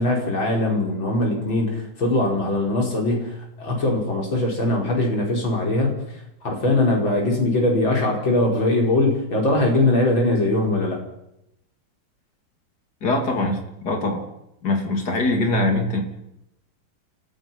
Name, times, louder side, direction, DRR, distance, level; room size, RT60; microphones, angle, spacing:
voice 1, 0.0-6.0 6.4-11.0, left 2 dB, 70° left, 0 dB, 5.7 m, -21 dB
voice 2, 13.0-14.2 14.6-16.0, left 2 dB, 50° left, 3 dB, 3.7 m, -22 dB
29.5 x 15.5 x 5.8 m, 0.82 s
omnidirectional pair, 2.2 m